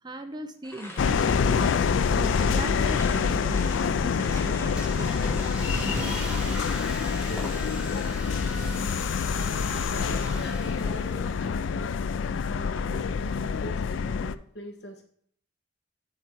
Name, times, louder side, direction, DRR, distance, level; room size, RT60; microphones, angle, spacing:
voice 1, 0.0-5.4, right 1 dB, 20° right, 7 dB, 0.6 m, -39 dB
sound 1, 0.6-8.0 8.3-8.8, left 2 dB, 15° left, 1.3 m, -44 dB
sound 2, 1.0-14.4, left 6 dB, 85° left, 0.4 m, -26 dB
Car / Engine starting, 3.5-11.7, right 1 dB, 5° right, 1.1 m, -38 dB
voice 2, 7.1-9.0 9.3-15.0, equal, 60° left, 4 dB, 1.3 m, -43 dB
8.9 x 4.6 x 4.5 m, 0.63 s
head